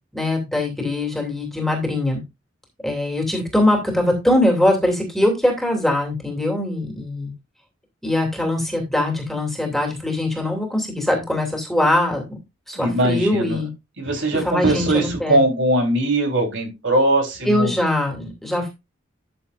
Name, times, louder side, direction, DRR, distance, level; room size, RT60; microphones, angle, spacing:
voice 1, 0.1-2.2 2.8-7.3 8.0-12.4 12.7-13.7 14.4-15.4 17.5-18.7, left 1 dB, ahead, 2 dB, 2.6 m, -22 dB
voice 2, 12.8-13.6 14.0-17.7, right 1 dB, 70° right, 3 dB, 3.5 m, -20 dB
12.5 x 7.0 x 2.5 m, 0.23 s
head